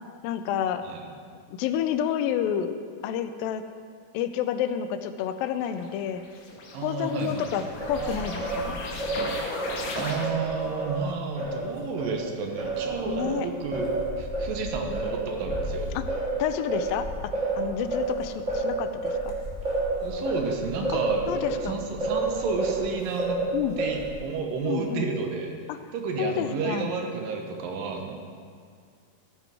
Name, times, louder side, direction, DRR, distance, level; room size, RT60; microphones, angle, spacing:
voice 1, 0.2-0.8 1.5-2.8 3.0-3.6 4.1-6.2 6.8-8.8 13.1-13.5 16.0-16.1 16.4-17.1 17.6-19.4 20.9-21.0 21.3-21.8 23.5-23.8 24.6-25.1 25.7-25.8 26.2-26.9, left 9 dB, 90° left, 9 dB, 2.3 m, -29 dB
sound 1, 5.7-10.6, left 3 dB, 60° left, 2.3 m, -37 dB
voice 2, 6.7-7.5 9.9-13.9 14.2-15.9 20.0-23.4 23.8-25.5 25.9-28.1, right 4 dB, 80° right, 3 dB, 2.7 m, -31 dB
Singing, 7.8-12.2 12.6-22.8 23.2-24.2, right 2 dB, 30° right, 1.5 m, -30 dB
15.0 x 9.6 x 3.5 m, 2.1 s
omnidirectional pair, 4.0 m